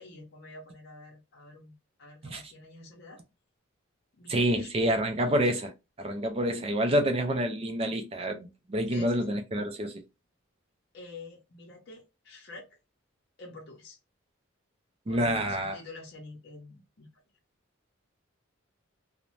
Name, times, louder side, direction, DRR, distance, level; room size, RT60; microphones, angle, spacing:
voice 1, 0.0-3.2 4.2-4.7 8.9-9.4 10.9-12.8 13.4-14.0 15.1-17.2, left 2 dB, 50° left, 0.6 m, -48 dB
voice 2, 4.3-5.7 6.0-10.0 15.1-15.8, right 1 dB, 30° right, 0.3 m, -28 dB
2.5 x 2.1 x 3.0 m
head